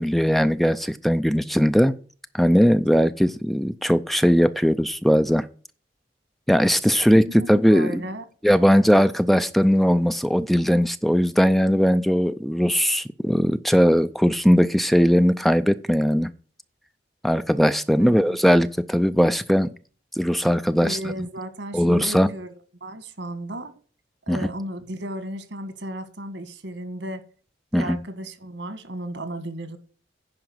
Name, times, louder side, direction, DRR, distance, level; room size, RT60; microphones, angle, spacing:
voice 1, 0.0-2.0 2.3-5.5 6.5-8.0 8.4-16.3 17.2-19.7 20.1-21.1 21.7-22.3 24.3-24.5 27.7-28.0, equal, ahead, 0.4 m, -19 dB
voice 2, 7.3-8.2 18.0-18.4 20.8-23.7 24.3-27.2 27.7-29.8, right 1 dB, 90° right, 1.7 m, -34 dB
10.5 x 5.0 x 7.8 m
head